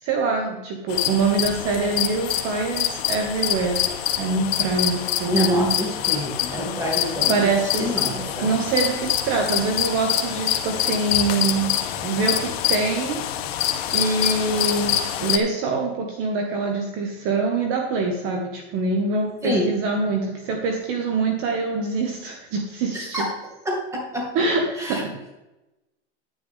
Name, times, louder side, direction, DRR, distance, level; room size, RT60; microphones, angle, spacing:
voice 1, 0.0-3.8 4.2-5.4 7.3-7.9 8.4-11.7 12.0-13.2 13.9-23.2 24.3-25.1, right 3 dB, 40° right, 2 dB, 1.7 m, -24 dB
sound 1, 0.9-15.4, left 11 dB, 65° left, 1.3 m, -25 dB
voice 2, 5.3-7.5 7.8-8.5 19.4-19.7 22.9-23.3 23.6-24.3 24.8-25.0, equal, 10° right, -1 dB, 3.1 m, -26 dB
10.5 x 10.5 x 3.7 m, 0.99 s
supercardioid pair, 145°, 33 cm